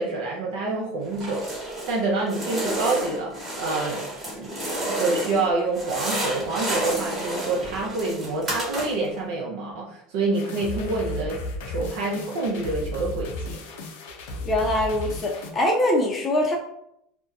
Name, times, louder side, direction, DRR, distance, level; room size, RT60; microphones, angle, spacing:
voice 1, 0.0-1.4 1.9-11.4 11.7-13.6, right 3 dB, 75° right, -2 dB, 0.5 m, -27 dB
sound 1, 1.1-2.0 2.3-5.5 5.7-9.1, right 1 dB, 25° right, 1.0 m, -30 dB
sound 2, 10.3-15.5, left 2 dB, 80° left, 0.4 m, -34 dB
voice 2, 14.5-16.6, left 1 dB, 30° left, -1 dB, 0.4 m, -23 dB
2.7 x 2.1 x 2.3 m, 0.75 s
supercardioid pair, 110°, 0 cm